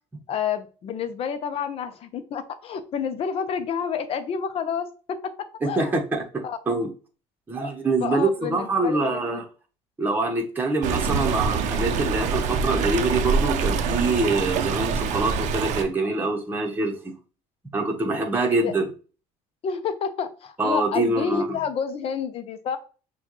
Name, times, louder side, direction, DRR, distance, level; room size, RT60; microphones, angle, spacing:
voice 1, 0.3-4.9 5.6-6.1 6.4-6.6 8.0-9.4 18.6-18.7 19.6-22.8, left 7 dB, 45° left, 10 dB, 0.7 m, -29 dB
voice 2, 5.6-6.9 7.5-9.5 10.0-17.1 17.7-18.9 20.6-21.6, right 3 dB, 15° right, 0 dB, 1.0 m, -25 dB
Stream, 10.8-15.8, right 5 dB, 65° right, 0.6 m, -25 dB
6.1 x 2.4 x 3.1 m, 0.36 s
cardioid pair, 115°, 13 cm